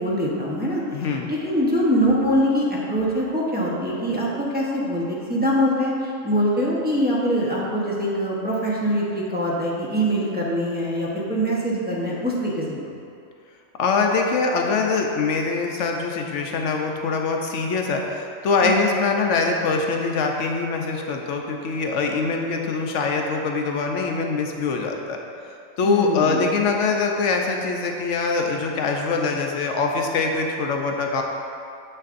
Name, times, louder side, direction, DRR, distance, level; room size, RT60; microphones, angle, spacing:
voice 1, 0.0-0.8 1.3-12.9 18.6-18.8 25.8-26.4, equal, 10° right, -6 dB, 0.7 m, -23 dB
voice 2, 0.9-1.3 13.8-25.2 25.8-31.2, left 4 dB, 65° left, 2 dB, 0.9 m, -23 dB
7.3 x 6.5 x 2.5 m, 2.5 s
omnidirectional pair, 1.4 m